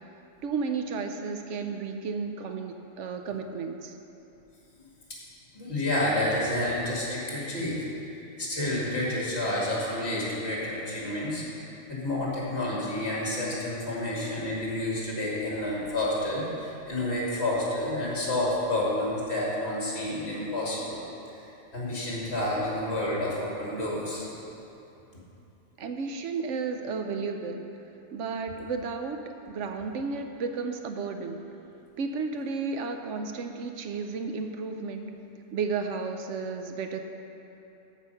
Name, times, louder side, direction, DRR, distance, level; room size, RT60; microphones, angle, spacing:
voice 1, 0.4-3.9 25.8-27.6 28.1-31.4 32.0-35.1 35.5-37.0, right 4 dB, 70° right, 5 dB, 0.9 m, -33 dB
voice 2, 5.5-8.1 8.4-11.4 11.9-21.0 21.7-24.4, left 1 dB, 55° left, -5 dB, 2.5 m, -29 dB
13.5 x 5.2 x 5.6 m, 2.9 s
omnidirectional pair, 1.3 m